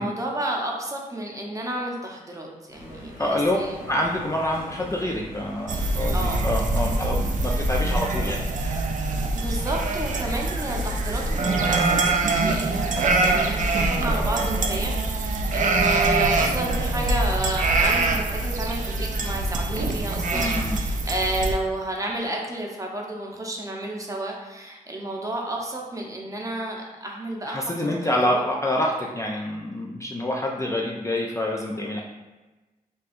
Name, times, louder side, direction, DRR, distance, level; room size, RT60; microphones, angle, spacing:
voice 1, 0.0-3.8 6.1-6.5 6.9-7.0 9.4-27.9 28.3-28.4, right 1 dB, 20° right, -1 dB, 0.7 m, -31 dB
sound 1, 2.7-7.9, equal, 85° left, 1.3 m, -42 dB
voice 2, 3.2-3.6 3.9-8.4 20.3-20.8 27.5-32.0, left 1 dB, 20° left, -2 dB, 0.4 m, -26 dB
sound 2, 5.7-21.5, right 2 dB, 55° right, 0.4 m, -24 dB
4.1 x 2.2 x 2.5 m, 1.1 s
cardioid pair, 55°, 15 cm